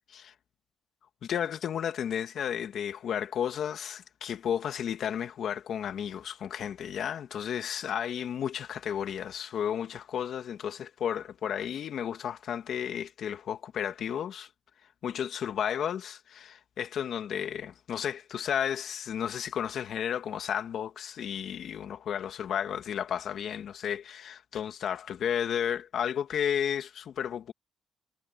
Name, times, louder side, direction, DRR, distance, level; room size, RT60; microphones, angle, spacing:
voice 1, 1.2-14.5 15.0-27.5, left 9 dB, 65° left, 2.4 m, -33 dB
cardioid pair, 90°, 0 cm